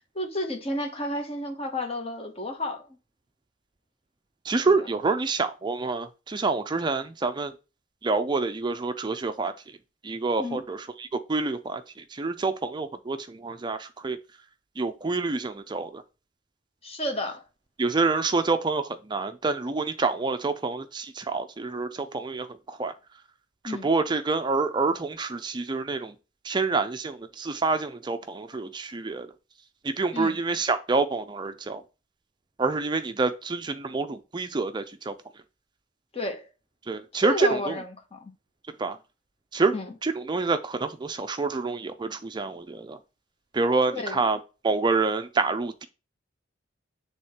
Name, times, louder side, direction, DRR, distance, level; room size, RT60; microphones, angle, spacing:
voice 1, 0.1-3.0 4.6-5.0 10.4-10.7 16.8-17.4 23.6-23.9 30.1-30.4 36.1-36.5 37.2-38.3 39.7-40.0 43.9-44.2, left 2 dB, 30° left, 1.2 m, -32 dB
voice 2, 4.5-7.5 8.0-9.5 10.0-10.8 11.3-11.8 12.2-14.2 14.8-16.0 17.8-21.9 22.1-22.5 22.8-22.9 23.8-26.1 26.5-29.3 29.8-31.8 32.6-35.1 36.9-37.6 38.8-39.0 39.5-39.7 40.0-43.0 43.5-44.4 44.6-45.9, right 3 dB, 25° right, 0.4 m, -27 dB
8.0 x 3.6 x 4.3 m
head